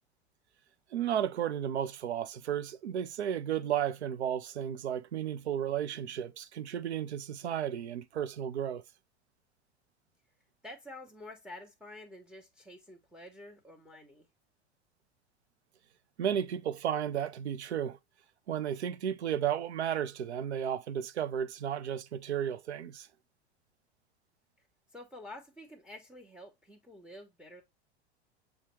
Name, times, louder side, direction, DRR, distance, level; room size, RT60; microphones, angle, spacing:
voice 1, 0.9-8.8 16.2-18.0 18.5-23.1, right 9 dB, 80° right, 0.6 m, -33 dB
voice 2, 10.6-14.3 24.9-27.6, left 1 dB, 5° right, 1.0 m, -49 dB
6.7 x 2.3 x 3.1 m
hypercardioid pair, 90°, 33 cm